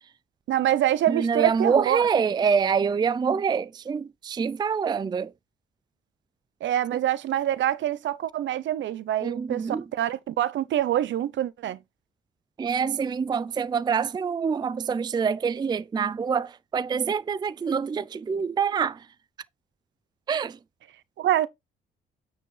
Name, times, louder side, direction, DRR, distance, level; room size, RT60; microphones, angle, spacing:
voice 1, 0.5-2.0 6.6-11.8 21.2-21.5, right 12 dB, 70° right, 0.8 m, -25 dB
voice 2, 1.1-5.3 9.2-9.8 12.6-19.0 20.3-20.6, right 6 dB, 20° right, 0.4 m, -26 dB
9.1 x 4.2 x 3.9 m
cardioid pair, 90°, 20 cm